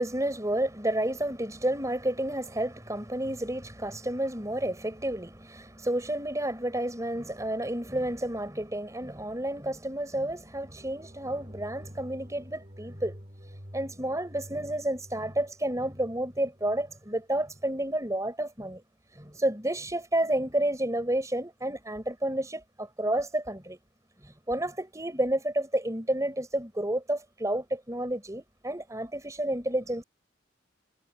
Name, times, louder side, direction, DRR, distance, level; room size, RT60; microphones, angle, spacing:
voice 1, 0.0-13.2 13.7-18.8 19.2-23.8 24.2-30.0, right 1 dB, 15° right, 5.3 m, -30 dB
sound 1, 10.4-17.7, equal, 40° right, 7.1 m, -48 dB
head